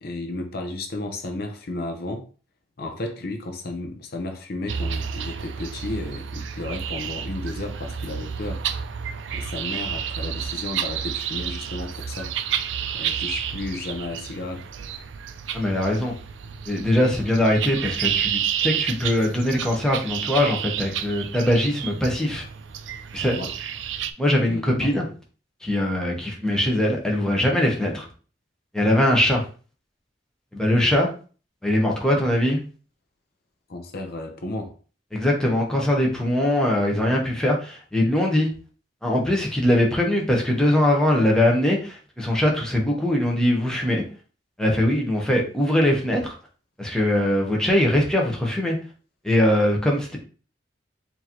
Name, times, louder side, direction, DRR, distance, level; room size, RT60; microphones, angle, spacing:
voice 1, 0.0-2.3 2.8-8.6 9.3-12.3 12.9-14.6 23.3-23.5 24.5-24.9 33.7-34.7, left 2 dB, 60° left, 5 dB, 0.7 m, -33 dB
sound 1, 4.7-24.1, right 8 dB, 75° right, 0.4 m, -30 dB
voice 2, 15.5-16.1 16.7-22.4 23.1-23.4 24.2-25.0 25.6-28.1 28.7-29.4 30.5-31.1 31.6-32.6 35.1-38.5 39.0-44.0 44.6-46.3 46.8-48.8 49.2-50.2, left 1 dB, 5° left, -2 dB, 0.9 m, -21 dB
4.7 x 2.7 x 2.9 m, 0.38 s
head